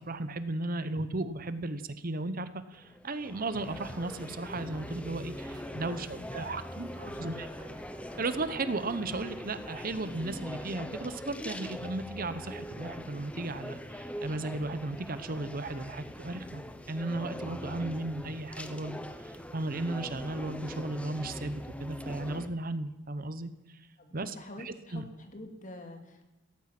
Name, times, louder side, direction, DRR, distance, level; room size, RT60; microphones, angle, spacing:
voice 1, 0.0-7.5 8.2-16.6 16.9-23.9 24.1-25.0, right 2 dB, 45° right, 13 dB, 0.9 m, -35 dB
sound 1, 2.7-22.5, equal, 5° left, 0.9 m, -42 dB
sound 2, 3.7-10.7, right 2 dB, 25° right, 1.7 m, -53 dB
voice 2, 5.7-7.7 24.0-26.3, left 1 dB, 40° left, 5 dB, 2.4 m, -48 dB
17.0 x 14.5 x 6.0 m, 1.0 s
head